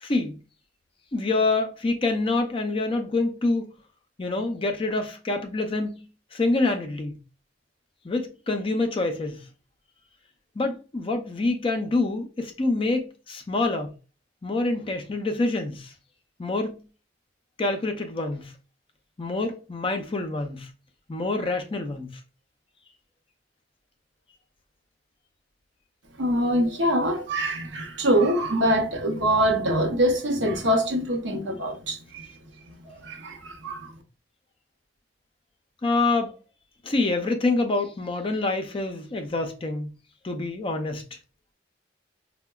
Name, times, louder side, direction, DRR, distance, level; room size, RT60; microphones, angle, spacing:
voice 1, 0.0-0.4 1.1-3.7 4.2-7.2 8.0-9.4 10.6-13.9 14.4-15.9 16.4-16.8 17.6-18.5 19.2-20.7 21.1-22.1 35.8-36.3 36.8-39.9 40.2-41.0, left 2 dB, 30° left, 0.4 m, -26 dB
voice 2, 26.2-32.3 32.8-33.9, right 1 dB, 75° right, 0.7 m, -24 dB
4.5 x 2.1 x 2.2 m
head